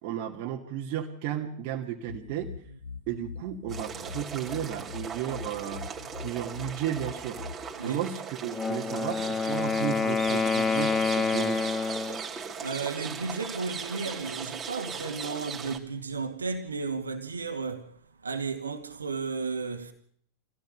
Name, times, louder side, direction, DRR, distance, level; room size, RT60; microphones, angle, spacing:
voice 1, 0.0-2.5 3.1-5.9 6.2-7.4 7.8-11.6, right 10 dB, 45° right, 2.5 m, -34 dB
sound 1, 2.1-7.6, left 4 dB, 90° left, 3.2 m, -42 dB
sound 2, 3.7-15.8, right 6 dB, 20° right, 3.6 m, -38 dB
Wind instrument woodwind instrument, 8.4-12.2, left 5 dB, 15° left, 1.7 m, -27 dB
voice 2, 12.6-17.9 18.2-19.9, right 4 dB, 75° right, 2.3 m, -34 dB
25.0 x 17.0 x 6.8 m
figure-of-eight pair, 90°, 0 cm